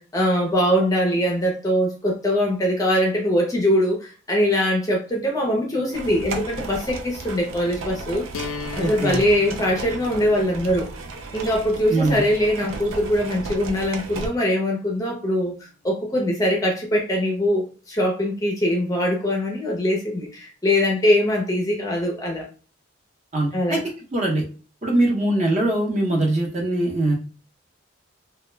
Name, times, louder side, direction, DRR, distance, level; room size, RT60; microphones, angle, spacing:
voice 1, 0.1-8.3 8.8-10.9 11.3-22.5 23.5-23.8, equal, 15° left, -1 dB, 0.5 m, -22 dB
sound 1, 5.9-14.3, right 3 dB, 80° right, 0.4 m, -34 dB
sound 2, 8.3-14.3, left 5 dB, 85° left, 0.4 m, -40 dB
voice 2, 8.8-9.2 11.9-12.2 23.3-23.8 24.1-24.4 24.8-27.1, right 1 dB, 35° right, 0 dB, 0.6 m, -22 dB
2.2 x 2.1 x 3.1 m, 0.38 s
head